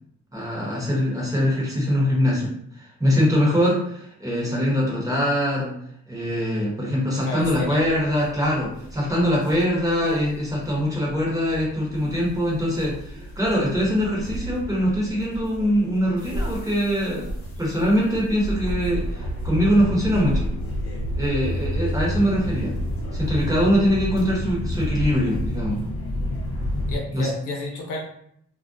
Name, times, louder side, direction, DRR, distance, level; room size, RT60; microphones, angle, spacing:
voice 1, 0.3-5.8 6.1-17.3 17.6-20.5 21.1-22.7 23.1-25.8 27.1-27.3, equal, 10° right, -5 dB, 1.0 m, -23 dB
voice 2, 7.3-7.8 26.9-28.0, left 2 dB, 80° left, -1 dB, 0.7 m, -31 dB
sound 1, 7.4-27.0, equal, 50° left, 0.8 m, -30 dB
2.3 x 2.1 x 2.6 m, 0.67 s
cardioid pair, 90°, 30 cm